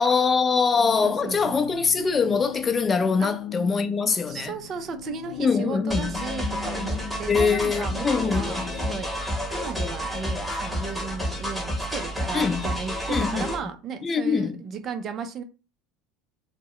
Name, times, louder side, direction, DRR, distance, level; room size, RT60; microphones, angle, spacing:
voice 1, 0.0-4.5 5.4-6.2 7.3-8.8 12.3-12.6 13.1-13.5 14.0-14.6, left 5 dB, 25° left, 0.5 m, -23 dB
sound 1, 0.7-9.0, left 9 dB, 55° left, 0.8 m, -39 dB
voice 2, 1.0-1.6 3.2-3.3 4.3-9.1 9.5-15.4, right 6 dB, 40° right, 0.5 m, -35 dB
sound 2, 5.9-13.6, equal, ahead, 1.0 m, -30 dB
2.1 x 2.0 x 3.7 m
supercardioid pair, 95°, 0 cm